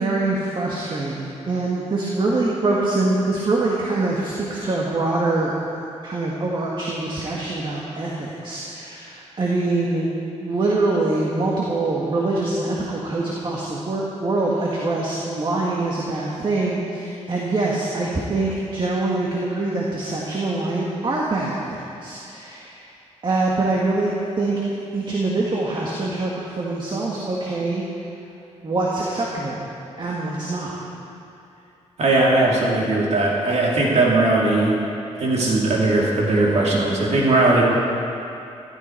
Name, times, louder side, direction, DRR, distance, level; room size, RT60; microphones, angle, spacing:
voice 1, 0.0-5.6 6.0-10.1 10.4-22.9 23.2-24.5 24.9-27.8 28.6-29.6 30.0-30.8, right 2 dB, 45° right, -4 dB, 1.9 m, -24 dB
voice 2, 32.0-34.8 35.2-37.7, right 2 dB, 65° right, -4 dB, 2.8 m, -19 dB
15.5 x 14.5 x 4.6 m, 2.7 s
wide cardioid pair, 110°, 12 cm